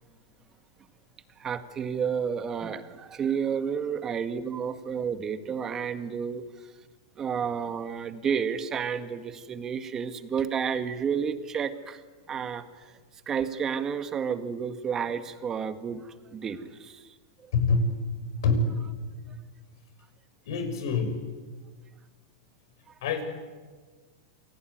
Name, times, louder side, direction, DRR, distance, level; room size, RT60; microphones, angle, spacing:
voice 1, 1.4-6.4 7.2-12.0 12.3-12.6 13.3-17.1, right 7 dB, 20° right, 10 dB, 1.9 m, -31 dB
voice 2, 17.5-18.0 18.3-18.7 19.2-19.4 20.5-21.2 23.0-23.2, left 3 dB, 70° left, 7 dB, 6.3 m, -25 dB
28.5 x 19.5 x 9.5 m, 1.4 s
hypercardioid pair, 135°, 2 cm